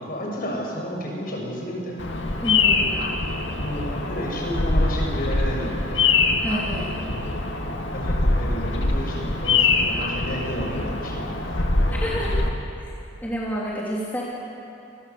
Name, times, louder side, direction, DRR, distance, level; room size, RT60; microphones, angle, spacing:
voice 1, 0.0-1.9 3.6-6.1 7.9-11.6, equal, 45° left, -2 dB, 6.6 m, -31 dB
Bird vocalization bird call bird song, 2.0-12.5, left 3 dB, 65° left, 2.2 m, -23 dB
voice 2, 2.4-3.0 6.4-6.9 11.9-12.3 13.2-14.2, equal, 10° left, -6 dB, 3.0 m, -29 dB
28.0 x 22.0 x 7.0 m, 2.7 s
head